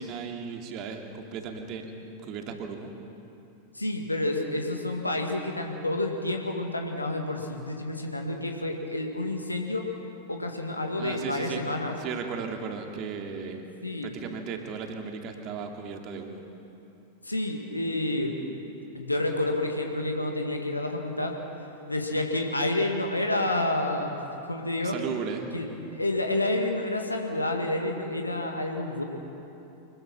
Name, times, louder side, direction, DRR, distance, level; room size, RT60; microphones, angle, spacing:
voice 1, 0.0-1.9 2.2-2.9 11.0-11.6 12.0-16.4 24.8-25.5, right 5 dB, 40° right, 3 dB, 2.5 m, -36 dB
voice 2, 3.7-9.9 10.3-11.9 13.8-14.1 17.2-18.4 18.9-21.4 21.9-25.0 25.5-29.0, left 1 dB, 85° left, 2 dB, 1.9 m, -29 dB
25.5 x 21.5 x 6.0 m, 2.9 s
figure-of-eight pair, 90°, 0 cm